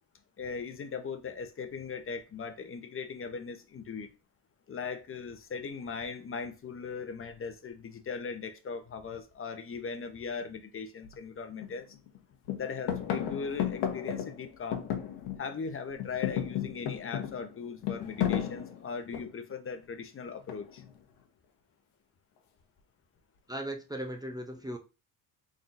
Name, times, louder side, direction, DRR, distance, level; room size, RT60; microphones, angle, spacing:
voice 1, 0.4-4.1 4.7-11.9 12.6-14.8 15.4-20.8, left 5 dB, 35° left, 7 dB, 0.8 m, -39 dB
sound 1, 11.0-11.1 11.6-12.2 12.4-15.6 15.9-19.5 20.5-21.0, left 10 dB, 80° left, 1.0 m, -34 dB
voice 2, 23.5-24.8, right 1 dB, 10° right, 4 dB, 0.5 m, -37 dB
3.8 x 3.7 x 2.5 m, 0.31 s
cardioid pair, 90°, 39 cm